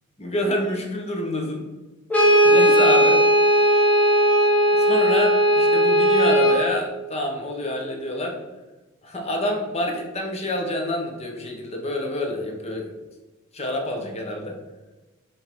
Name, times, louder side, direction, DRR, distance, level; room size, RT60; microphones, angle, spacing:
voice 1, 0.2-1.7 2.4-3.2 4.7-8.4 9.0-12.9 13.5-14.6, left 1 dB, 30° left, 2 dB, 1.0 m, -27 dB
Brass instrument, 2.1-6.7, equal, 5° left, 1.0 m, -17 dB
6.4 x 3.4 x 4.5 m, 1.2 s
head